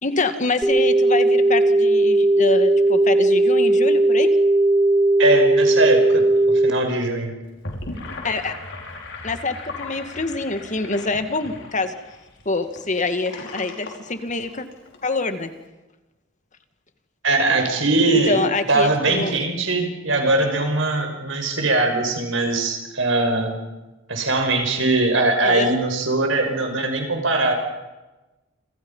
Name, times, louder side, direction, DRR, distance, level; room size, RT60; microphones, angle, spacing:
voice 1, 0.0-4.3 8.2-8.5 9.2-11.9 12.5-14.6 15.0-15.5 18.3-19.3 25.4-25.7, left 3 dB, 40° left, 8 dB, 2.1 m, -25 dB
sound 1, 0.6-6.7, right 2 dB, 5° right, 2.6 m, -17 dB
voice 2, 5.2-6.2 6.6-7.3 17.2-18.4 18.7-23.5 24.1-27.5, right 2 dB, 70° right, 5 dB, 5.9 m, -21 dB
Gurgling / Sink (filling or washing), 7.5-15.0, left 2 dB, 65° left, 5.3 m, -37 dB
28.5 x 27.0 x 5.7 m, 1.1 s
head